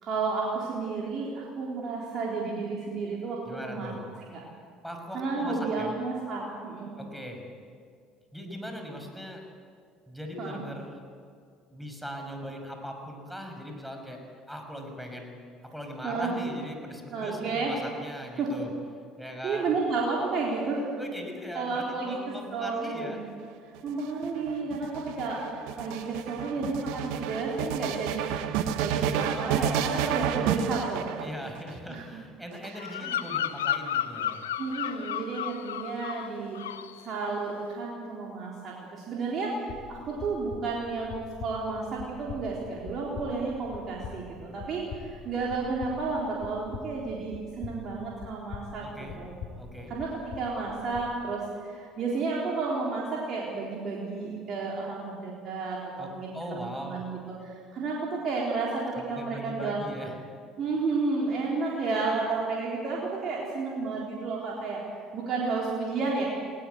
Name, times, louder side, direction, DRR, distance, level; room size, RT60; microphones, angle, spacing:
voice 1, 0.0-3.9 4.3-4.4 5.1-6.9 10.4-10.6 16.0-16.3 17.1-17.7 18.4-18.5 19.4-20.9 21.5-23.3 23.8-31.1 31.9-32.0 34.6-36.6 37.0-39.5 39.9-48.9 49.2-49.3 49.9-59.8 60.6-64.8 65.1-66.2, right 4 dB, 55° right, -4 dB, 4.0 m, -32 dB
voice 2, 3.5-4.1 4.8-5.9 7.0-7.4 8.3-9.4 10.1-11.0 11.7-14.2 14.5-15.4 15.7-18.7 19.2-19.8 21.0-23.2 31.2-34.4 48.8-49.2 49.6-50.0 56.0-57.0 59.0-60.1, equal, ahead, 3 dB, 5.8 m, -40 dB
sound 1, 23.8-31.7 32.5-33.4, right 9 dB, 75° right, 1.2 m, -31 dB
Bird vocalization bird call bird song, 32.7-36.3 36.5-37.0, left 10 dB, 90° left, 0.6 m, -32 dB
sound 2, 39.7-51.1, left 7 dB, 60° left, 2.2 m, -44 dB
20.0 x 18.5 x 8.2 m, 2.2 s
hypercardioid pair, 65°, 0 cm